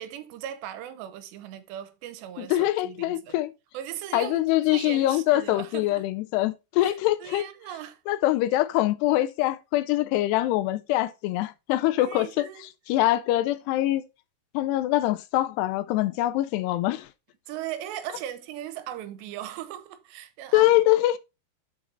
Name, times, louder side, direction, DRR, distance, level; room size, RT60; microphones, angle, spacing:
voice 1, 0.0-3.4 3.7-6.0 6.8-8.0 12.0-12.6 13.4-13.5 17.5-20.7, right 11 dB, 90° right, 3.0 m, -38 dB
voice 2, 2.4-3.5 4.1-7.4 8.1-12.5 12.9-14.0 14.5-17.1 20.5-21.2, left 15 dB, 85° left, 2.5 m, -24 dB
7.1 x 5.4 x 4.3 m
omnidirectional pair, 5.0 m